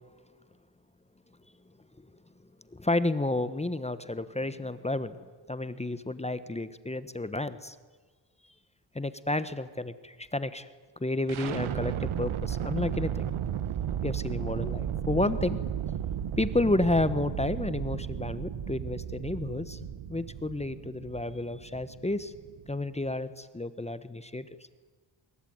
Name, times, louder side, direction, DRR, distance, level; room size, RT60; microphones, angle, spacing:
voice 1, 2.7-7.8 8.9-10.7 11.0-13.2 14.0-15.6 16.4-22.3 22.7-24.5, left 2 dB, 15° left, 13 dB, 1.2 m, -31 dB
sound 1, 11.3-23.2, right 9 dB, 85° right, 1.5 m, -34 dB
26.0 x 22.5 x 9.5 m, 1.3 s
wide cardioid pair, 120°, 47 cm